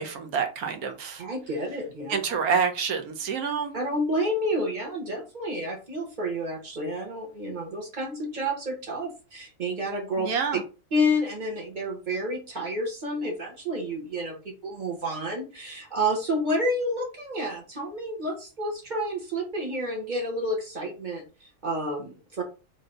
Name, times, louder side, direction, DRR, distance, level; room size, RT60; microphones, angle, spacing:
voice 1, 0.0-1.2 2.1-3.7 10.2-10.6, right 6 dB, 70° right, 1.1 m, -27 dB
voice 2, 1.2-2.1 3.7-10.3 10.9-22.4, equal, 35° right, 0.9 m, -30 dB
3.3 x 2.7 x 3.8 m
omnidirectional pair, 1.7 m